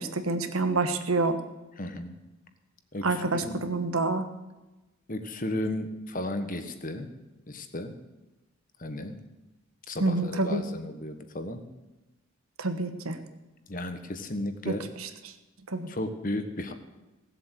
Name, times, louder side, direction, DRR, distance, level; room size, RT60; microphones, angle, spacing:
voice 1, 0.0-1.4 3.0-4.3 10.0-10.6 12.6-13.2 14.7-14.8 15.7-15.9, right 3 dB, 80° right, 8 dB, 1.4 m, -27 dB
voice 2, 1.8-2.2 2.9-3.7 5.1-7.1 7.5-7.9 8.8-9.2 9.9-11.6 13.7-14.8 15.9-16.7, left 1 dB, 40° left, 8 dB, 1.3 m, -34 dB
17.0 x 7.9 x 8.2 m, 1.1 s
head